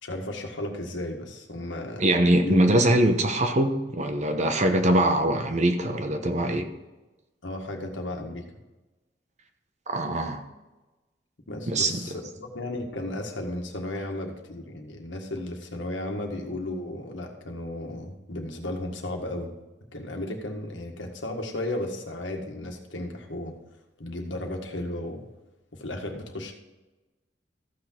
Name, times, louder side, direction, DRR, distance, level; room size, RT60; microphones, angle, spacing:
voice 1, 0.0-2.0 2.4-2.6 7.4-8.4 11.5-19.5 19.9-23.5 24.0-25.3 25.7-26.5, left 1 dB, 80° left, 3 dB, 1.7 m, -34 dB
voice 2, 2.0-6.6 9.9-10.4 11.7-12.0, right 1 dB, 40° right, 6 dB, 1.0 m, -22 dB
14.5 x 6.2 x 4.5 m, 1.1 s
head